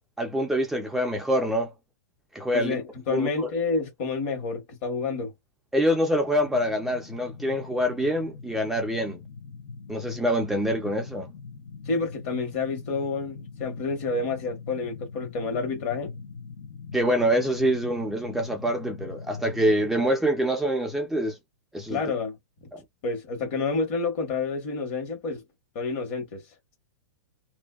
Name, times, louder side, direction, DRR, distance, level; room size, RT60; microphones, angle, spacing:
voice 1, 0.2-1.7 2.3-2.8 3.1-3.5 5.7-9.2 9.9-11.3 16.9-21.4 21.7-22.0 22.7-22.8, equal, 5° right, 0.4 m, -25 dB
voice 2, 2.5-5.3 11.8-16.2 21.9-22.7 23.0-25.4 25.7-26.4, left 4 dB, 45° left, 1.3 m, -29 dB
sound 1, 6.4-20.1, left 5 dB, 70° left, 0.7 m, -41 dB
2.6 x 2.2 x 2.3 m
hypercardioid pair, 145°, 10 cm